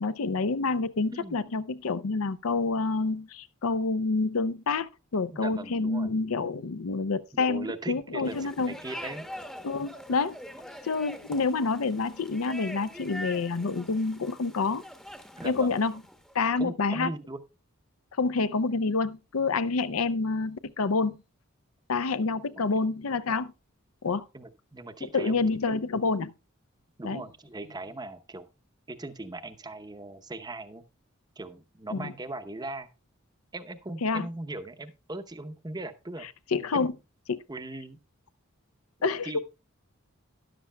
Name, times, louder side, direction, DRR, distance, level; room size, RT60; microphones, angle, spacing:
voice 1, 0.0-8.7 9.6-10.4 10.8-14.8 15.4-16.0 16.3-17.1 18.2-21.2 21.9-23.5 24.0-24.2 25.1-26.3 27.0-27.2 31.9-32.1 34.0-34.3 36.5-36.9 37.3-37.4 39.0-39.3, left 4 dB, 80° left, 0.6 m, -28 dB
voice 2, 5.3-6.1 7.3-9.3 15.4-15.8 16.6-17.4 22.6-22.7 24.3-25.9 27.0-28.5 28.9-30.8 31.4-32.9 33.5-36.3 36.6-36.8 37.5-38.0 39.2-39.4, right 2 dB, 20° right, 0.7 m, -39 dB
sound 1, 8.2-16.3, equal, 5° left, 0.9 m, -44 dB
13.0 x 11.0 x 2.2 m
head